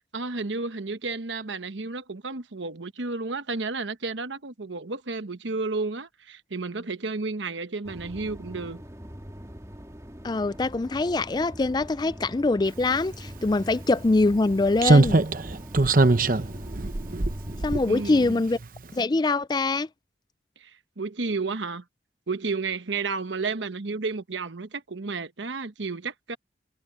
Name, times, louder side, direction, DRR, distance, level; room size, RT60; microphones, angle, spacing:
voice 1, 0.1-8.8 17.9-18.4 20.6-21.8 22.3-26.4, right 3 dB, 85° right, 1.1 m, -32 dB
sound 1, 7.8-18.4, equal, 15° right, 2.2 m, -43 dB
voice 2, 10.2-15.2 17.6-18.6 18.9-19.9, left 3 dB, 20° left, 0.3 m, -24 dB
Slam, 13.4-13.5 14.8-18.3 18.6-18.8, right 2 dB, 50° right, 0.9 m, -22 dB
head